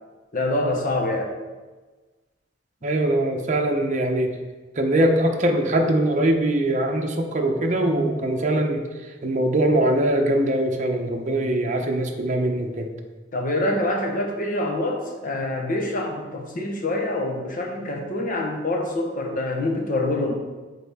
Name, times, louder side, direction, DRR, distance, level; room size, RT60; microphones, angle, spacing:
voice 1, 0.3-1.3 13.3-20.3, left 1 dB, 45° left, 2 dB, 1.1 m, -25 dB
voice 2, 2.8-4.3 4.8-8.8 9.2-12.9, right 1 dB, 40° right, 2 dB, 0.7 m, -22 dB
8.3 x 4.2 x 3.6 m, 1.3 s
head